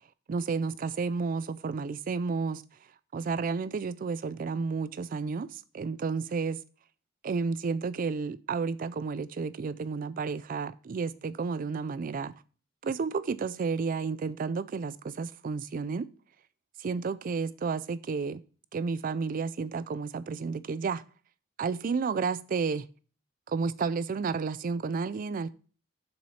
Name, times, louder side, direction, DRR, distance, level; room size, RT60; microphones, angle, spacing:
voice 1, 0.3-2.6 3.1-6.6 7.2-12.3 12.8-16.1 16.8-18.4 18.7-21.0 21.6-22.9 23.5-25.5, right 5 dB, 45° right, 0.4 m, -31 dB
7.1 x 6.2 x 5.6 m
head